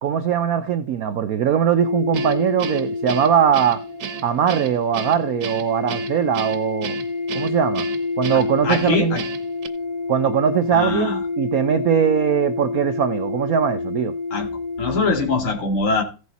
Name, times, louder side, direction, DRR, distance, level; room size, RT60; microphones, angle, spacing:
voice 1, 0.0-3.8 4.2-7.0 7.3-7.9 8.2-9.2 10.1-14.1, right 8 dB, 80° right, 0.8 m, -21 dB
sound 1, 1.8-15.2, left 3 dB, 60° left, 1.6 m, -28 dB
Guitar, 2.1-9.7, right 8 dB, 60° right, 1.2 m, -33 dB
voice 2, 8.3-9.2 10.7-11.2 14.3-14.5 14.8-16.0, left 4 dB, 90° left, 3.2 m, -23 dB
15.0 x 6.4 x 4.1 m
omnidirectional pair, 2.2 m